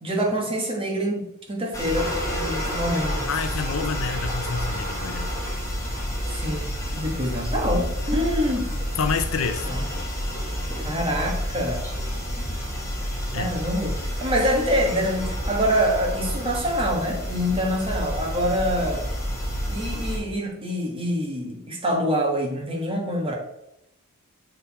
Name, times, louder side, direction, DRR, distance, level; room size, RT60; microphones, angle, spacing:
voice 1, 0.0-3.3 6.3-8.7 9.6-9.8 10.8-11.8 13.3-19.0 19.7-23.3, equal, 25° right, 0 dB, 1.4 m, -26 dB
sound 1, 1.7-20.2, equal, 15° left, 1.6 m, -29 dB
voice 2, 3.3-5.4 9.0-9.7 13.3-13.5, left 5 dB, 65° left, 9 dB, 0.5 m, -28 dB
6.8 x 3.9 x 4.2 m, 0.84 s
head